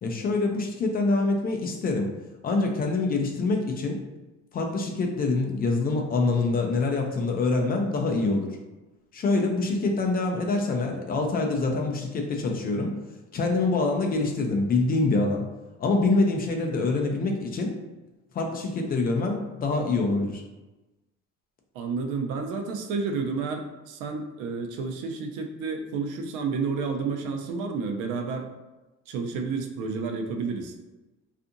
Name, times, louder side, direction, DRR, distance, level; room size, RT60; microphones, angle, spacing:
voice 1, 0.0-2.1 2.4-4.0 4.5-8.5 9.1-12.9 13.3-15.5 15.8-17.7 18.3-20.4, left 3 dB, 30° left, 2 dB, 0.4 m, -25 dB
voice 2, 21.7-28.5 29.1-30.7, right 4 dB, 85° right, 5 dB, 0.5 m, -30 dB
2.5 x 2.5 x 2.6 m, 1.1 s
cardioid pair, 130°, 30 cm